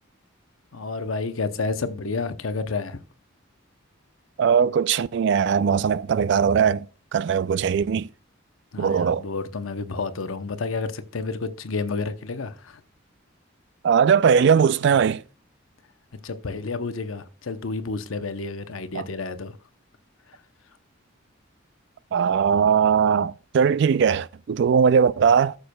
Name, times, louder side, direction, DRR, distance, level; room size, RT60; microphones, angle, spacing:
voice 1, 0.7-3.0 8.7-12.8 16.2-19.6, left 4 dB, 80° left, 0.7 m, -30 dB
voice 2, 4.4-6.9 7.1-8.1 8.8-9.2 13.8-15.2 18.9-19.1 22.1-25.6, right 7 dB, 60° right, 0.3 m, -20 dB
14.5 x 6.7 x 2.2 m
head